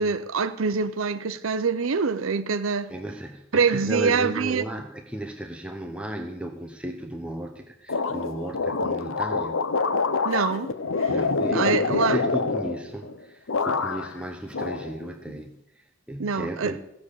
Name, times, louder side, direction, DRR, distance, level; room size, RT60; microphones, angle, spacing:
voice 1, 0.0-2.9 3.5-4.7 10.2-10.7 11.0-11.1 11.5-12.2 16.2-16.8, right 5 dB, 80° right, 0.6 m, -25 dB
voice 2, 2.9-9.6 11.1-16.8, right 1 dB, 5° right, 0.8 m, -34 dB
sound 1, 7.9-13.2 13.5-14.2 14.5-15.4, left 4 dB, 75° left, 0.8 m, -26 dB
15.5 x 7.1 x 8.3 m
head